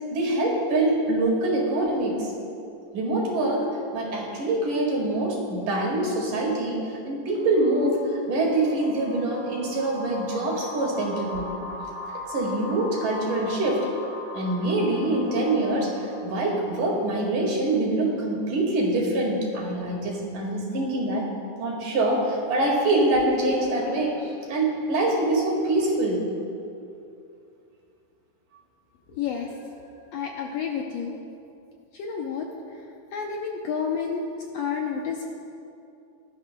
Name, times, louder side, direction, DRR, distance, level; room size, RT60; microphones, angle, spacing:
voice 1, 0.1-2.3 2.9-11.6 12.3-13.9 14.3-21.3 21.6-26.2, right 2 dB, 85° right, -3 dB, 3.5 m, -25 dB
sound 1, 7.3-16.8, left 2 dB, 40° right, 1.3 m, -40 dB
voice 2, 29.1-29.5 30.1-31.2 31.9-32.5 33.1-34.2 34.5-35.2, left 6 dB, 75° left, 0 dB, 1.5 m, -30 dB
18.0 x 12.0 x 2.2 m, 2.6 s
omnidirectional pair, 3.6 m